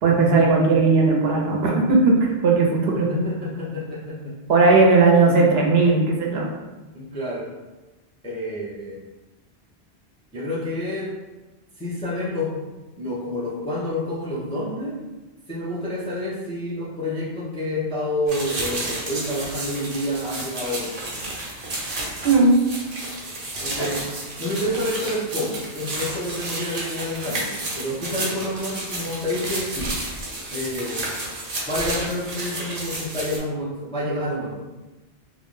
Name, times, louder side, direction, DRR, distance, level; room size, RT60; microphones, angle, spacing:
voice 1, 0.0-3.1 4.5-6.5 22.2-22.6 23.8-23.9, right 3 dB, 75° right, -1 dB, 0.8 m, -17 dB
voice 2, 2.9-4.3 6.9-7.5 8.2-9.0 10.3-11.1 11.8-12.5 13.0-15.0 15.5-21.1 23.6-24.1 24.4-30.0 30.5-31.1 31.7-34.5, left 1 dB, 10° left, -7 dB, 0.3 m, -28 dB
sound 1, 18.3-33.4, right 2 dB, 45° right, 0.6 m, -31 dB
2.5 x 2.0 x 3.1 m, 1.1 s
omnidirectional pair, 1.1 m